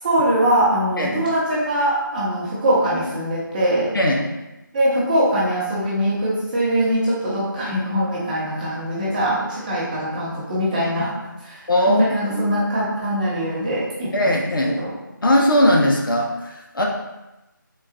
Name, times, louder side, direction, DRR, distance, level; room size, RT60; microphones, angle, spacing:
voice 1, 0.0-3.9 4.7-11.1 11.4-11.6 11.9-14.9, right 1 dB, 25° right, -8 dB, 0.9 m, -22 dB
voice 2, 3.9-4.3 11.7-12.0 12.3-12.5 14.1-14.7 15.2-16.8, left 1 dB, 75° left, -1 dB, 0.6 m, -19 dB
3.9 x 2.3 x 2.5 m, 0.99 s
figure-of-eight pair, 160°, 11 cm